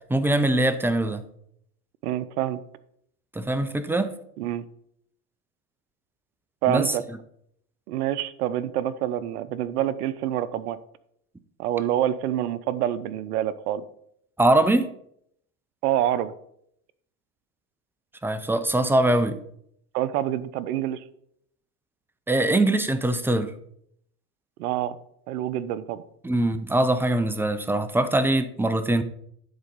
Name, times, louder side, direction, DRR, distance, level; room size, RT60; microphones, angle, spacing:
voice 1, 0.1-1.2 3.3-4.1 6.7-6.9 14.4-14.9 18.2-19.4 22.3-23.5 26.2-29.0, right 1 dB, 5° right, 0.5 m, -22 dB
voice 2, 2.0-2.6 4.4-4.7 6.6-7.0 7.9-10.8 11.6-13.8 15.8-16.3 19.9-21.0 24.6-25.0 25.3-26.0, right 12 dB, 80° right, 0.7 m, -26 dB
9.7 x 4.1 x 5.3 m
hypercardioid pair, 95°, 45 cm